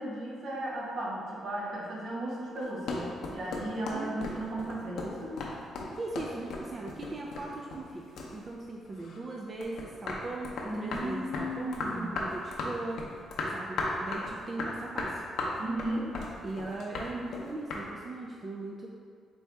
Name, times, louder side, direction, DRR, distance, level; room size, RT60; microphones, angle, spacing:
voice 1, 0.0-5.3 10.6-12.1 15.6-16.1, right 1 dB, 70° right, -4 dB, 0.9 m, -35 dB
sound 1, 2.6-9.2 9.6-17.9, left 3 dB, 75° left, 0.6 m, -36 dB
voice 2, 6.0-13.0 13.5-15.2 16.4-18.9, right 2 dB, 35° right, -1 dB, 0.3 m, -39 dB
4.4 x 2.7 x 3.3 m, 2.1 s
cardioid pair, 90°, 0 cm